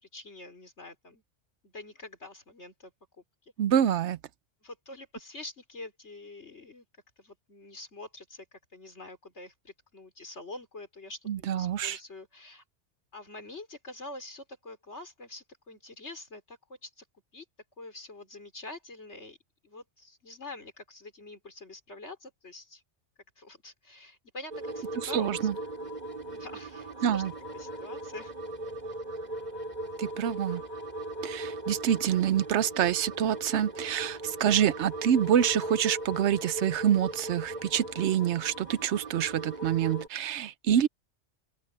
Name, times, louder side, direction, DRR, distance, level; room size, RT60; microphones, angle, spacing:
voice 1, 0.0-1.2 1.6-3.5 4.6-6.8 7.2-12.6 13.1-17.1 17.3-17.5 17.8-19.4 19.6-22.8 23.4-25.5 26.2-27.2 27.5-28.3, left 2 dB, 70° left, 4.4 m, -46 dB
voice 2, 3.6-4.2 11.3-12.0 25.1-25.5 27.0-27.3 30.0-30.6 31.2-40.9, right 9 dB, 75° right, 0.9 m, -26 dB
sound 1, 24.5-40.1, right 2 dB, 35° right, 2.7 m, -38 dB
open air
omnidirectional pair, 1.2 m